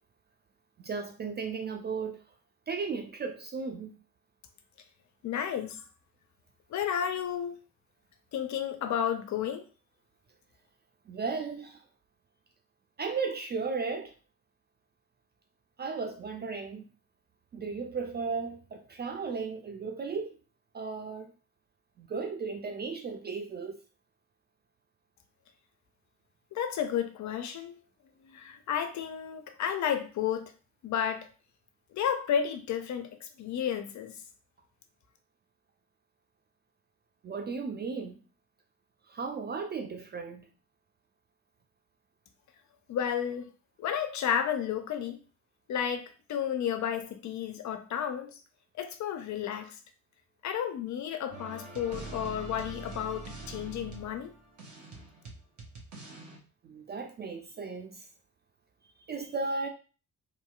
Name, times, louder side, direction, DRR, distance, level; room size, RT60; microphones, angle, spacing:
voice 1, 0.8-2.2 2.7-3.9 11.1-11.8 13.0-14.1 15.8-16.9 17.5-20.3 20.7-21.3 22.0-23.8 37.2-38.2 39.1-40.5 56.6-58.0 59.1-59.7, right 4 dB, 25° right, 0.3 m, -35 dB
voice 2, 5.2-5.8 6.7-7.6 8.3-9.6 26.5-27.8 28.2-30.5 30.8-31.3 31.9-34.2 42.9-43.5 43.8-45.2 45.7-48.4 48.8-49.7 50.4-54.3, left 9 dB, 45° left, 0.5 m, -32 dB
sound 1, 51.3-56.4, right 2 dB, 40° right, 1.0 m, -44 dB
2.7 x 2.7 x 2.3 m
figure-of-eight pair, 40°, 44 cm